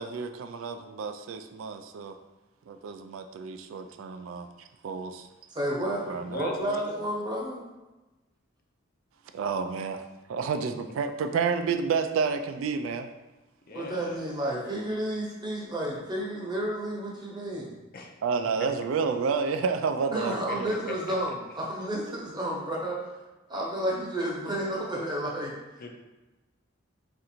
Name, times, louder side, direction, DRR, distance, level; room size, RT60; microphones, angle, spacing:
voice 1, 0.0-2.2 2.7-5.3 6.1-6.4 9.3-10.0 10.3-13.1 18.2-20.9, right 5 dB, 80° right, 7 dB, 0.3 m, -30 dB
voice 2, 5.5-7.6 13.7-17.7 20.1-23.0 23.5-25.5, right 1 dB, 20° right, -3 dB, 0.9 m, -31 dB
voice 3, 6.2-7.0 13.7-14.8 17.9-18.1 18.6-18.7 20.5-21.2 25.8-25.9, left 2 dB, 50° left, 2 dB, 0.5 m, -39 dB
3.8 x 2.5 x 4.3 m, 1.1 s
head